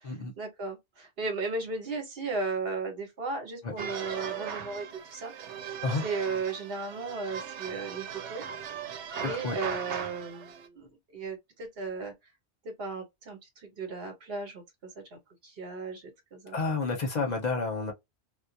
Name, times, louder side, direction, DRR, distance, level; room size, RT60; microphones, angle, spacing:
voice 1, 0.0-5.3 6.0-8.4 9.2-12.1 12.6-16.0 16.3-16.8, right 4 dB, 60° right, 1.2 m, -36 dB
sound 1, 3.8-10.7, right 7 dB, 85° right, 0.9 m, -38 dB
voice 2, 9.2-9.6 16.5-17.9, left 3 dB, 45° left, 0.7 m, -30 dB
2.3 x 2.0 x 2.7 m
omnidirectional pair, 1.1 m